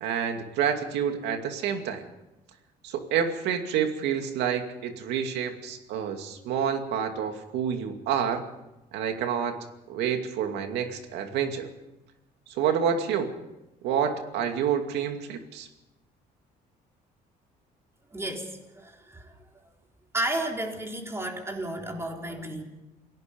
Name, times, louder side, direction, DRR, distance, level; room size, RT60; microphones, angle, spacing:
voice 1, 0.0-2.1 2.8-8.4 8.9-9.6 9.9-11.7 12.5-13.3 13.8-15.7, right 8 dB, 85° right, 6 dB, 2.5 m, -28 dB
voice 2, 18.1-19.3 20.1-22.6, right 1 dB, 15° right, 1 dB, 4.2 m, -32 dB
28.0 x 18.0 x 5.4 m, 0.98 s
cardioid pair, 110°, 17 cm